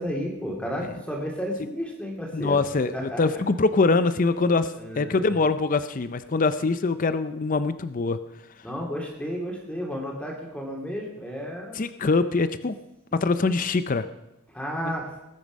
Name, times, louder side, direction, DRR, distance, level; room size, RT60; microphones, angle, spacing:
voice 1, 0.0-2.6 2.9-3.4 4.8-5.3 8.6-11.8 13.4-13.5 14.5-15.1, equal, 5° left, -1 dB, 2.8 m, -32 dB
voice 2, 2.3-8.2 11.7-12.8 13.1-14.1 14.8-14.9, left 3 dB, 35° left, 12 dB, 0.5 m, -23 dB
19.5 x 8.8 x 5.3 m, 0.93 s
head